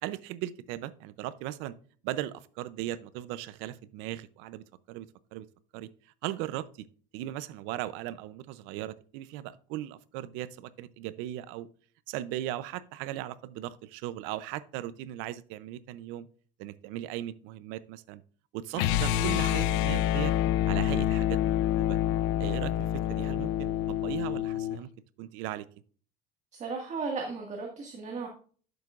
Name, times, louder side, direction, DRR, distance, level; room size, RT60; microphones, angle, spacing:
voice 1, 0.0-1.8 2.0-5.5 5.7-6.9 7.1-11.7 12.1-16.3 16.6-18.2 18.5-20.3 20.7-22.0 22.4-24.9 25.2-25.7, right 14 dB, 80° right, 16 dB, 0.6 m, -38 dB
sound 1, 18.7-24.8, left 12 dB, 80° left, 0.6 m, -27 dB
voice 2, 26.5-28.3, right 4 dB, 35° right, 1 dB, 1.8 m, -35 dB
12.0 x 6.8 x 2.4 m, 0.43 s
cardioid pair, 120°, 20 cm